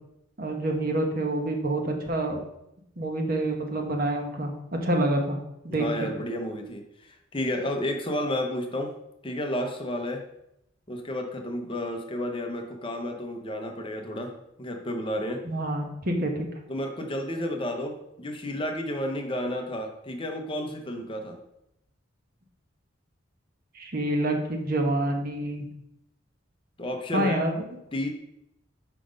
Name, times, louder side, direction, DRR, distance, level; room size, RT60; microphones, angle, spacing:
voice 1, 0.4-2.4 3.0-5.4 5.6-5.9 15.4-16.4 23.7-25.7 27.1-27.6, right 1 dB, 45° right, 3 dB, 1.1 m, -27 dB
voice 2, 5.7-8.9 9.2-10.2 10.9-15.4 16.7-21.4 26.8-27.4 27.9-28.1, left 1 dB, 25° left, 3 dB, 0.8 m, -31 dB
5.8 x 5.0 x 5.2 m, 0.81 s
head